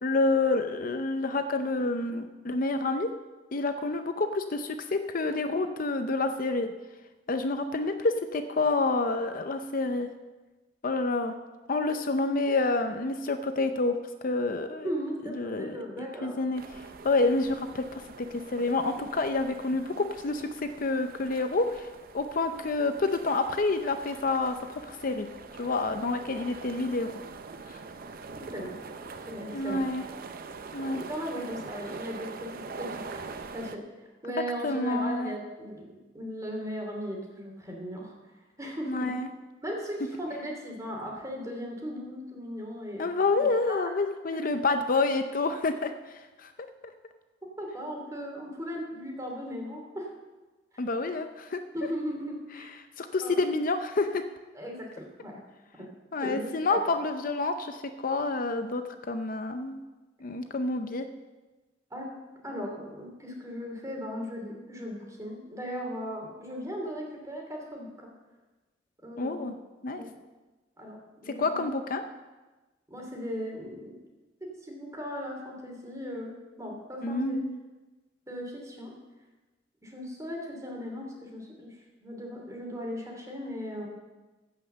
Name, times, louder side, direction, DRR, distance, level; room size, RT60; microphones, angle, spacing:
voice 1, 0.0-3.1 3.5-6.7 7.3-10.1 10.8-11.3 11.7-14.0 14.2-14.9 15.4-21.9 22.1-25.3 25.6-27.2 27.7-27.8 29.5-30.0 30.7-31.0 34.6-35.4 38.8-39.3 43.0-46.7 50.8-51.6 53.0-54.2 56.1-59.8 60.2-61.1 69.2-69.6 69.8-70.0 71.4-72.0 77.0-77.6, left 3 dB, 50° left, 8 dB, 0.6 m, -28 dB
voice 2, 14.8-16.4 28.5-28.8 29.3-29.9 30.8-32.5 32.8-33.3 33.5-33.8 34.2-35.9 36.1-38.1 38.6-39.1 39.6-43.0 43.4-43.8 44.3-44.4 47.6-50.1 50.7-50.8 51.7-52.7 53.2-53.4 54.5-55.4 55.8-55.9 56.2-56.9 61.9-62.1 62.4-68.1 69.0-69.5 69.9-70.1 70.8-71.8 72.9-73.9 74.6-77.4 78.3-78.9 79.8-83.9, equal, 20° right, 0 dB, 2.7 m, -37 dB
sound 1, 16.5-33.8, right 4 dB, 50° right, 0.6 m, -44 dB
15.5 x 5.7 x 6.6 m, 1.2 s
head